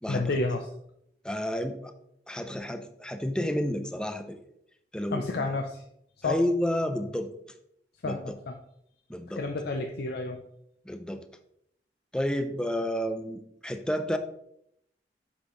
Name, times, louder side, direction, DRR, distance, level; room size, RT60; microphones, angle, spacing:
voice 1, 0.1-0.7 5.1-5.8 6.2-6.4 8.0-8.6 9.4-10.4, left 3 dB, 65° left, 4 dB, 0.5 m, -30 dB
voice 2, 1.2-1.9 2.3-4.4 4.9-5.6 6.2-7.3 8.0-8.2 9.1-9.4 10.9-11.2 12.1-14.2, equal, 5° left, 8 dB, 0.5 m, -30 dB
8.1 x 5.5 x 3.0 m, 0.74 s
head